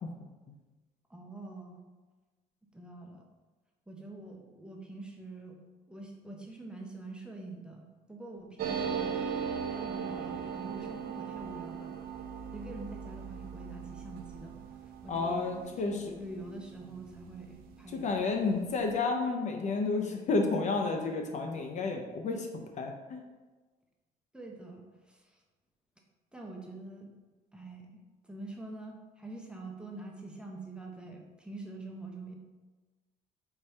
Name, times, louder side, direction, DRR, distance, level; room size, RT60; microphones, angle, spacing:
voice 1, 1.1-1.8 2.7-3.3 3.9-5.6 5.9-9.2 9.7-12.0 12.5-14.6 15.0-18.4 24.3-25.4 26.3-27.1 27.5-27.9 28.2-32.4, right 2 dB, 5° right, 0 dB, 0.6 m, -45 dB
sound 1, 8.6-17.7 18.0-18.1 18.3-18.9, right 7 dB, 65° right, 0.5 m, -39 dB
voice 2, 15.1-16.1 17.9-22.5 22.8-23.2, left 3 dB, 45° left, 3 dB, 0.5 m, -31 dB
4.6 x 2.7 x 3.2 m, 1.3 s
cardioid pair, 110°, 17 cm